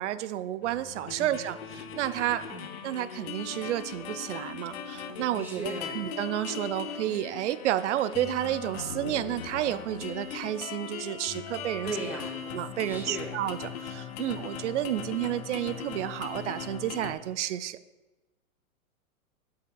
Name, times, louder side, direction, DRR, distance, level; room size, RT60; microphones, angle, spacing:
voice 1, 0.0-2.4 2.8-12.0 12.5-17.8, right 13 dB, 55° right, 13 dB, 0.6 m, -31 dB
sound 1, 0.6-17.1, left 7 dB, 45° left, 0.9 m, -39 dB
voice 2, 5.4-6.0 11.8-12.4 12.8-13.3, right 2 dB, 5° right, -2 dB, 0.9 m, -37 dB
14.0 x 5.7 x 2.3 m, 1.1 s
hypercardioid pair, 115°, 43 cm